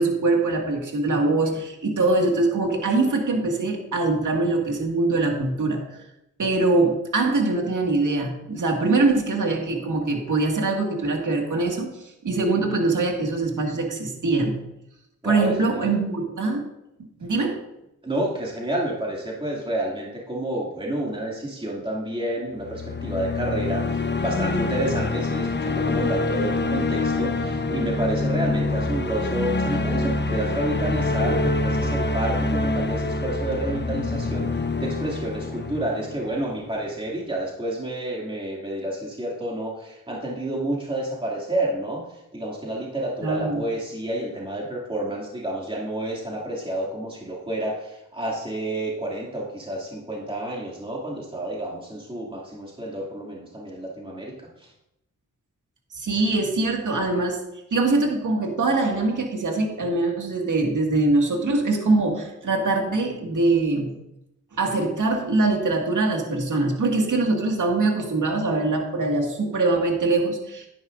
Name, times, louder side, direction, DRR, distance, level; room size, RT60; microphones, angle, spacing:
voice 1, 0.0-5.8 6.4-14.6 15.2-16.7 17.2-17.6 43.2-43.6 55.9-57.4 57.7-63.9 64.5-70.7, right 3 dB, 65° right, 2 dB, 2.0 m, -23 dB
voice 2, 15.2-15.9 18.0-54.3 54.6-54.7, right 1 dB, 15° right, -3 dB, 2.5 m, -29 dB
sound 1, 22.6-36.8, left 2 dB, 30° left, 0.9 m, -26 dB
10.5 x 10.0 x 2.6 m, 0.88 s
cardioid pair, 50°, 33 cm